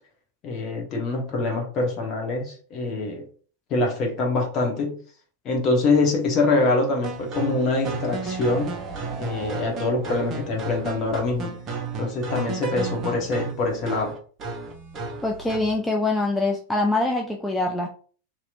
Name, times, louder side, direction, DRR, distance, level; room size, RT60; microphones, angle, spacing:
voice 1, 0.4-3.3 3.7-5.0 5.4-8.7 9.2-11.5 12.0-14.2, left 2 dB, 35° left, 1.0 m, -24 dB
sound 1, 7.0-15.8, right 4 dB, 30° right, 0.8 m, -33 dB
voice 2, 15.2-17.9, left 2 dB, 10° left, 0.4 m, -24 dB
2.9 x 2.8 x 2.4 m
figure-of-eight pair, 90°, 0 cm